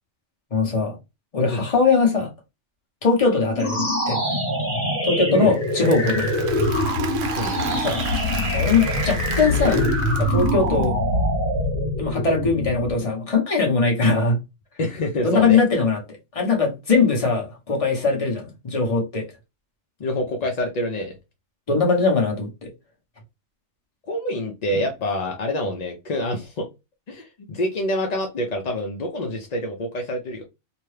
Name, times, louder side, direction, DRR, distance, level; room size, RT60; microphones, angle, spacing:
voice 1, 0.5-1.0 1.3-2.3 3.0-4.4 5.0-6.3 7.7-8.0 8.5-9.8 10.2-11.0 12.0-14.4 15.2-16.0 16.3-19.3 21.7-22.7 24.7-24.8, left 4 dB, 30° left, 0.8 m, -21 dB
sound 1, 3.5-13.0, left 1 dB, 10° left, 1.1 m, -24 dB
Applause / Crowd, 5.5-10.8, right 6 dB, 75° right, 0.9 m, -35 dB
voice 2, 7.4-7.8 14.8-15.6 20.0-21.1 24.1-26.7 27.1-30.4, left 1 dB, 55° left, 0.4 m, -26 dB
2.7 x 2.2 x 3.1 m
omnidirectional pair, 1.4 m